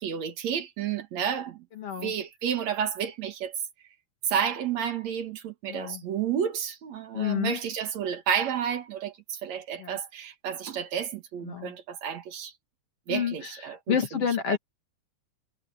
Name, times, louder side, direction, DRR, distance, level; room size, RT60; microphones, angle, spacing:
voice 1, 0.0-1.6 2.0-3.6 4.3-12.5 13.1-14.0 14.5-14.6, right 8 dB, 70° right, 2.8 m, -31 dB
voice 2, 1.8-2.1 5.7-6.0 7.1-7.6 9.8-10.0 11.4-11.7 13.1-14.6, left 8 dB, 55° left, 3.1 m, -29 dB
omnidirectional pair, 3.3 m